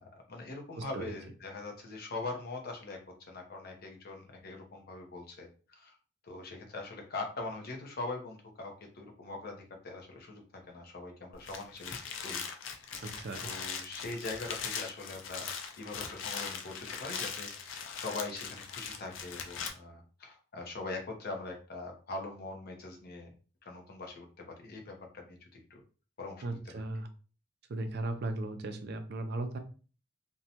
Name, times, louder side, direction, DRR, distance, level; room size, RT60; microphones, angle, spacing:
voice 1, 0.0-3.0 3.3-6.0 6.2-11.9 12.2-12.8 13.4-15.5 15.8-23.3 23.6-24.3 24.6-25.8 26.2-26.8, left 3 dB, 55° left, 2 dB, 0.7 m, -42 dB
voice 2, 0.8-1.1 13.0-13.5 26.4-27.1 27.7-29.6, right 2 dB, 60° right, 7 dB, 0.4 m, -37 dB
sound 1, 11.3-19.7, left 6 dB, 90° left, 0.4 m, -40 dB
2.6 x 2.1 x 2.8 m, 0.37 s
head